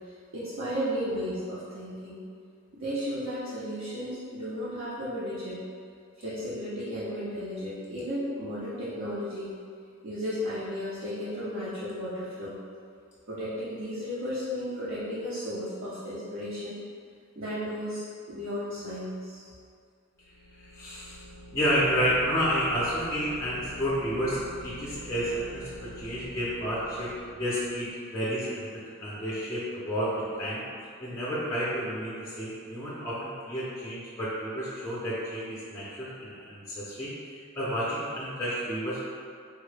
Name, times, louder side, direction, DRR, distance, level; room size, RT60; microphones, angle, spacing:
voice 1, 0.0-2.2 2.7-5.6 6.2-9.5 10.0-12.6 13.3-16.8 17.4-18.0 18.3-19.4, equal, 65° right, -11 dB, 0.6 m, -34 dB
sound 1, 20.2-27.9, equal, 90° left, 0.4 m, -46 dB
voice 2, 20.6-21.2 21.5-30.6 31.0-39.0, equal, 15° left, -9 dB, 0.4 m, -31 dB
3.5 x 2.1 x 3.2 m, 2.2 s
head